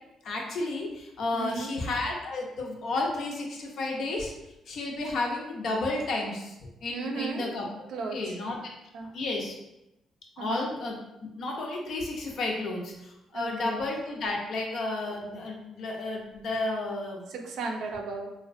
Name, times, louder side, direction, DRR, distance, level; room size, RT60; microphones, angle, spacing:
voice 1, 0.2-4.3 4.7-7.6 8.1-8.6 9.1-9.5 10.4-11.0 11.4-17.3, left 2 dB, 65° left, 0 dB, 0.5 m, -32 dB
voice 2, 1.3-1.7 6.9-7.6 7.9-8.4 8.9-9.1 10.4-10.7 13.3-13.8 17.3-18.3, right 4 dB, 75° right, 2 dB, 0.4 m, -35 dB
2.4 x 2.1 x 2.4 m, 0.92 s
cardioid pair, 90°, 0 cm